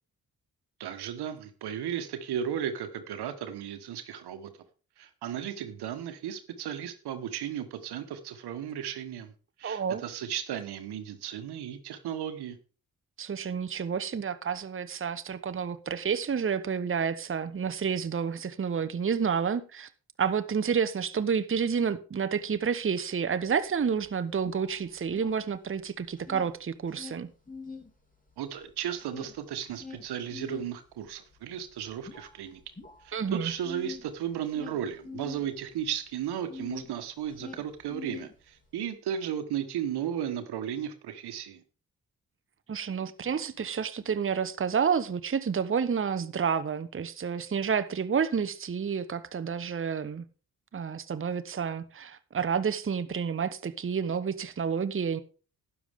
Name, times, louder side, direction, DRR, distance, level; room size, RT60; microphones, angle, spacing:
voice 1, 0.8-4.5 5.0-9.3 9.6-12.6 28.4-32.6 33.0-41.6, right 9 dB, 80° right, 1.3 m, -35 dB
voice 2, 9.6-10.0 13.2-19.9 20.2-27.3 33.1-33.5 42.7-50.2 50.7-55.2, right 6 dB, 30° right, 0.9 m, -30 dB
sound 1, 23.4-23.5 23.8-25.8 26.0-27.9 28.3-36.9 37.2-38.7, left 4 dB, 20° left, 3.2 m, -44 dB
12.5 x 9.3 x 3.6 m
hypercardioid pair, 40°, 39 cm